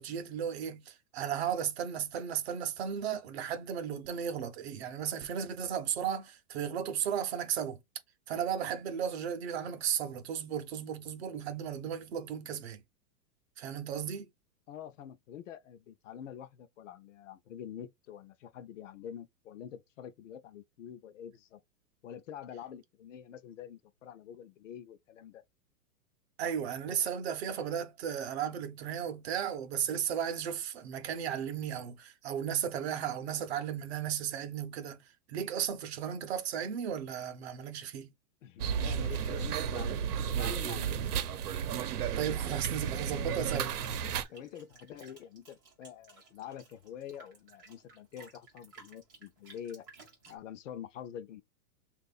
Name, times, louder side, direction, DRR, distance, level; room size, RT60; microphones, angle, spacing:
voice 1, 0.0-7.8 8.3-12.8 13.6-14.3 26.4-35.0 35.3-38.1 42.2-43.8, right 8 dB, 45° right, 0.7 m, -35 dB
voice 2, 14.7-21.6 22.0-25.4 38.4-41.1 44.3-49.8 50.3-51.4, left 9 dB, 55° left, 0.6 m, -46 dB
sound 1, 38.6-44.2, right 8 dB, 75° right, 0.8 m, -33 dB
sound 2, 41.7-50.4, right 4 dB, 15° right, 0.4 m, -54 dB
3.1 x 2.5 x 4.0 m
supercardioid pair, 165°, 45 cm